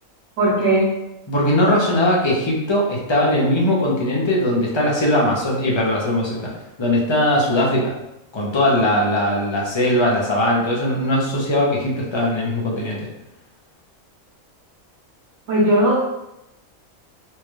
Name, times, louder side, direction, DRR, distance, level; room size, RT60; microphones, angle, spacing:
voice 1, 0.4-0.9 15.5-16.0, right 1 dB, 65° right, -7 dB, 1.2 m, -17 dB
voice 2, 1.3-6.5 6.8-7.9 8.3-13.1, left 1 dB, 30° left, -3 dB, 0.6 m, -20 dB
4.3 x 2.4 x 3.1 m, 0.89 s
omnidirectional pair, 1.5 m